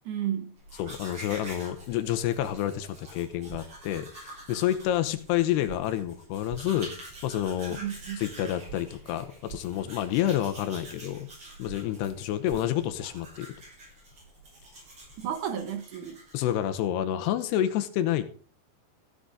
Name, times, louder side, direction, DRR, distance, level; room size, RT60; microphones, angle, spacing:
voice 1, 0.1-0.5 7.7-8.2 15.2-16.2, right 9 dB, 65° right, 2.3 m, -32 dB
Domestic sounds home sounds, 0.6-16.7, right 1 dB, 35° right, 6.9 m, -47 dB
voice 2, 0.8-6.9 7.2-7.8 8.2-11.3 11.6-13.5 16.3-18.3, left 12 dB, 90° left, 3.0 m, -29 dB
sound 1, 3.5-3.6 5.7-5.8 6.5-6.6 8.7-8.8 9.5-9.6 11.7-11.8 12.5-12.6, right 12 dB, 85° right, 3.1 m, -41 dB
15.0 x 7.9 x 5.0 m
omnidirectional pair, 4.7 m